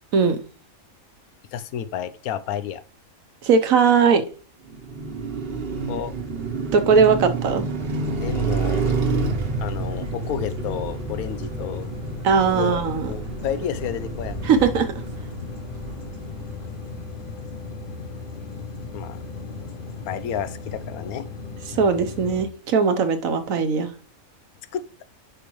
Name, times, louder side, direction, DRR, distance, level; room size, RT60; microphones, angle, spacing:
voice 1, 1.5-2.8 5.9-6.1 8.2-8.9 9.6-11.9 12.5-12.8 13.1-14.4 18.9-19.2 20.1-21.3 24.7-25.0, left 9 dB, 90° left, 13 dB, 1.1 m, -31 dB
voice 2, 3.4-4.2 6.7-7.7 12.2-13.1 14.4-14.9 21.7-23.9, right 5 dB, 75° right, 8 dB, 1.3 m, -19 dB
Car passing by, 4.7-16.9, right 4 dB, 45° right, 1.1 m, -29 dB
sound 1, 5.5-20.9, equal, 60° left, 2.4 m, -43 dB
sound 2, 8.5-22.5, left 4 dB, 40° left, 1.0 m, -37 dB
10.0 x 4.9 x 3.1 m, 0.39 s
omnidirectional pair, 1.5 m